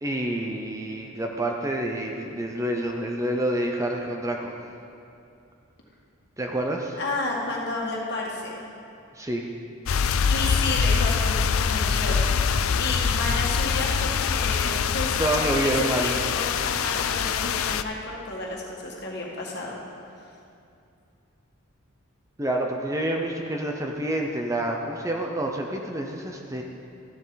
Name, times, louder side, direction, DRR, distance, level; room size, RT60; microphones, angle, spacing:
voice 1, 0.0-4.6 6.4-7.0 9.2-9.5 15.2-16.1 22.4-26.6, right 1 dB, 15° right, 1 dB, 0.7 m, -28 dB
voice 2, 7.0-8.6 10.3-19.8, left 2 dB, 50° left, -2 dB, 1.9 m, -32 dB
sound 1, 9.9-17.8, left 6 dB, 85° left, 0.5 m, -24 dB
14.5 x 11.5 x 4.1 m, 2.6 s
head